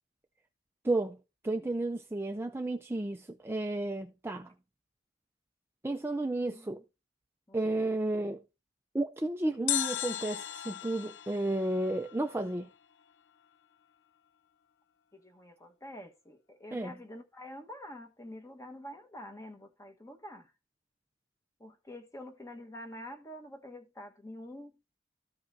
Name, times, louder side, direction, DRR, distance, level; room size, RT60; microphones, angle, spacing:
voice 1, 0.8-1.2 1.4-4.5 5.8-6.8 7.5-8.4 8.9-12.7 16.7-16.9, right 2 dB, 15° right, 0.5 m, -32 dB
voice 2, 6.5-6.8 7.5-7.8 15.1-20.5 21.6-24.7, left 1 dB, 15° left, 1.3 m, -47 dB
sound 1, 9.7-12.8 13.0-13.1, left 13 dB, 65° left, 0.3 m, -36 dB
14.0 x 5.5 x 2.7 m
head